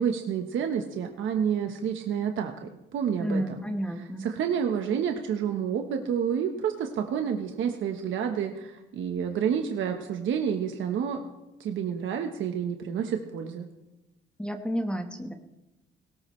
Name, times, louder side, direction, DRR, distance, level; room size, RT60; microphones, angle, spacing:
voice 1, 0.0-3.4 4.2-11.2 11.6-13.7, right 8 dB, 75° right, 4 dB, 1.2 m, -29 dB
voice 2, 3.2-4.3 14.4-15.3, equal, 5° left, 5 dB, 1.4 m, -31 dB
18.5 x 17.5 x 3.3 m, 0.97 s
cardioid pair, 90°, 20 cm